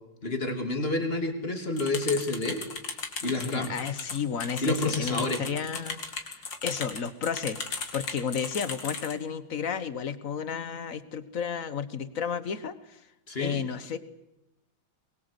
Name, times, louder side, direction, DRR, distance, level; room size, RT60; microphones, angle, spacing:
voice 1, 0.2-2.6 3.2-3.7 4.6-5.4 13.3-13.6, left 2 dB, 30° left, 5 dB, 3.1 m, -29 dB
sound 1, 1.8-9.1, left 4 dB, 65° left, 3.2 m, -36 dB
voice 2, 3.4-6.0 6.4-13.0 13.4-14.0, left 7 dB, 45° left, 14 dB, 1.5 m, -32 dB
22.5 x 22.5 x 8.1 m, 0.93 s
omnidirectional pair, 2.2 m